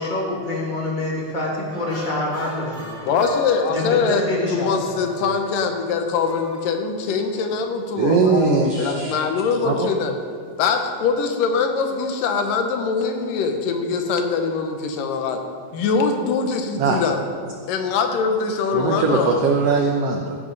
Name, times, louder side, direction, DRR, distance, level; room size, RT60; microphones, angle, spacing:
voice 1, 0.0-3.1 3.7-4.7 8.2-8.6 9.0-9.1, left 1 dB, 20° left, -2 dB, 1.4 m, -26 dB
sound 1, 1.7-7.3, left 1 dB, 30° right, 1.9 m, -36 dB
voice 2, 3.1-4.2 4.5-8.4 8.8-10.2 10.6-15.4 15.7-17.2 17.7-19.3, left 5 dB, 80° left, 5 dB, 2.6 m, -23 dB
voice 3, 8.0-9.1 9.6-9.9 16.8-17.0 18.7-20.4, right 4 dB, 80° right, 3 dB, 1.4 m, -20 dB
15.0 x 11.0 x 4.0 m, 2.1 s
omnidirectional pair, 3.8 m